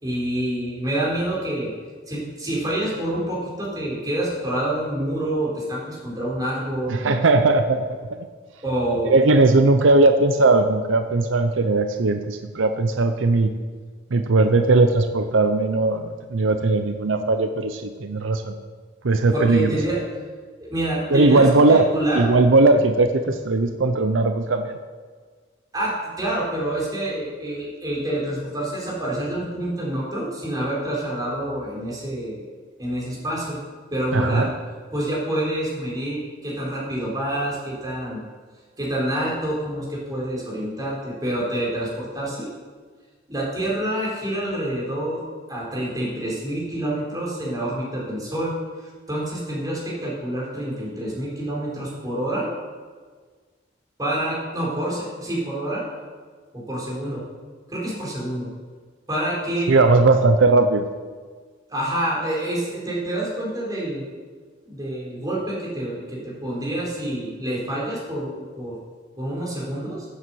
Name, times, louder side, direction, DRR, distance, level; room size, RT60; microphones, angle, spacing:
voice 1, 0.0-1.7 2.1-7.0 8.6-9.1 19.3-20.0 20.6-22.3 25.7-32.4 32.8-33.6 33.9-34.5 34.9-38.2 38.8-42.5 43.3-45.2 45.5-48.5 49.1-52.5 54.0-55.8 56.5-57.2 57.7-58.5 59.1-59.7 61.7-64.0 64.7-68.7 69.2-70.0, right 1 dB, 20° right, -5 dB, 3.9 m, -27 dB
voice 2, 6.9-8.1 9.1-13.5 14.1-18.5 19.0-19.8 21.1-21.8 22.1-24.8 34.1-34.5 59.7-60.8, right 3 dB, 85° right, 7 dB, 0.7 m, -18 dB
8.9 x 7.7 x 7.8 m, 1.5 s
head